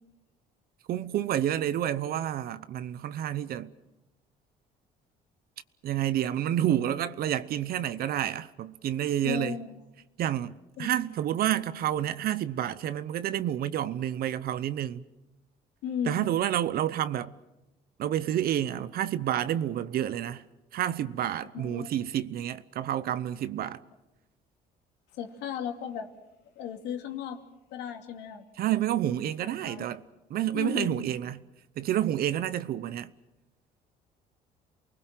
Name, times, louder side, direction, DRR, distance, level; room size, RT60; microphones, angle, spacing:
voice 1, 0.9-3.7 5.8-9.6 10.2-15.0 16.1-17.3 18.0-20.4 20.7-23.8 28.6-30.0 30.3-31.4 31.8-33.1, right 11 dB, 65° right, 0.9 m, -29 dB
voice 2, 9.2-9.8 10.8-10.9 15.8-16.3 21.5-21.9 25.2-26.1 26.6-27.4 27.7-28.4 29.7-29.9 30.5-31.0, left 8 dB, 85° left, 2.8 m, -35 dB
28.5 x 20.0 x 7.6 m
cardioid pair, 110°, 17 cm